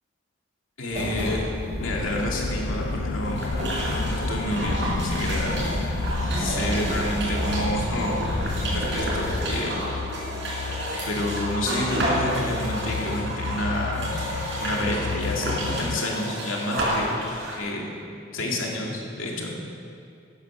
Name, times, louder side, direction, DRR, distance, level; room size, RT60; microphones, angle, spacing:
voice 1, 0.8-1.5 1.8-3.6 3.9-5.6 6.4-8.2 8.6-9.8 10.6-10.8 11.1-14.2 14.6-17.1 17.5-17.9 18.3-19.5, left 1 dB, 90° left, -1 dB, 2.6 m, -29 dB
sound 1, 0.9-9.5, equal, 35° right, 3.9 m, -30 dB
sound 2, 1.8-16.0, left 5 dB, 70° left, 0.3 m, -34 dB
sound 3, 3.2-17.6, right 1 dB, 60° right, 4.4 m, -30 dB
15.0 x 9.8 x 6.4 m, 2.4 s
head